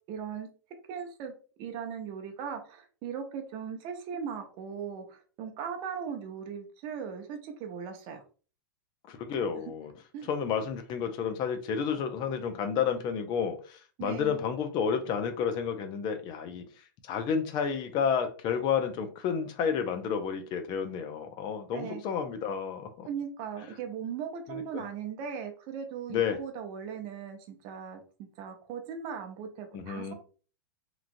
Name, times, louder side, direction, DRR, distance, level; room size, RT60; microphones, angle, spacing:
voice 1, 0.1-0.5 0.9-1.3 1.6-8.2 10.1-10.3 14.0-14.4 21.7-22.0 23.1-28.0 28.4-30.1, right 7 dB, 45° right, 5 dB, 0.7 m, -38 dB
voice 2, 9.1-9.9 10.3-16.6 17.1-23.1 24.5-24.8 26.1-26.4 29.7-30.1, left 7 dB, 40° left, 8 dB, 0.6 m, -31 dB
3.0 x 2.5 x 2.5 m, 0.38 s
hypercardioid pair, 105°, 11 cm